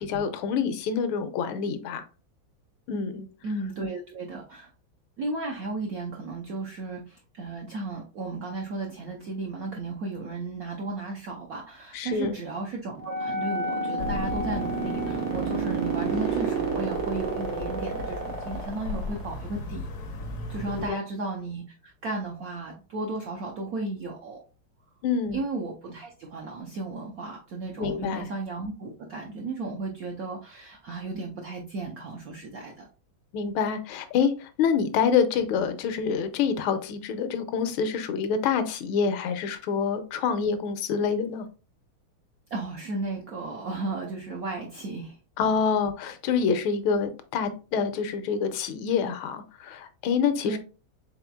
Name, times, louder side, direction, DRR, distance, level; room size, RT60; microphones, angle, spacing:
voice 1, 0.0-2.0 2.9-3.3 11.9-12.4 20.8-21.0 25.0-25.4 27.8-28.3 33.3-41.5 45.4-50.6, left 6 dB, 80° left, 1.4 m, -26 dB
voice 2, 3.4-4.7 5.2-19.9 20.5-24.4 25.3-32.9 42.5-45.2 50.4-50.6, right 3 dB, 70° right, 0.8 m, -34 dB
sound 1, 12.9-19.5, right 6 dB, 90° right, 1.9 m, -30 dB
Wind instrument woodwind instrument, 13.0-18.7, left 2 dB, 10° left, 0.5 m, -35 dB
sound 2, 14.0-20.9, left 2 dB, 65° left, 0.7 m, -37 dB
4.3 x 4.0 x 2.3 m
omnidirectional pair, 2.3 m